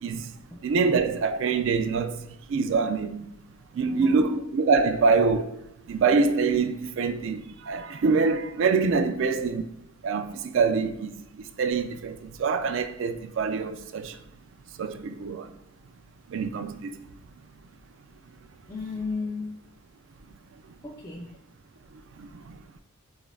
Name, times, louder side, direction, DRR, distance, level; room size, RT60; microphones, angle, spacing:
voice 1, 0.0-0.3 0.6-3.3 3.7-9.6 10.0-14.2 14.7-15.5 16.3-17.0 22.2-22.6, right 4 dB, 60° right, 0.3 m, -25 dB
voice 2, 3.8-4.3 18.7-19.6 20.8-21.4, left 3 dB, 15° left, 0.4 m, -35 dB
5.2 x 2.4 x 2.3 m
head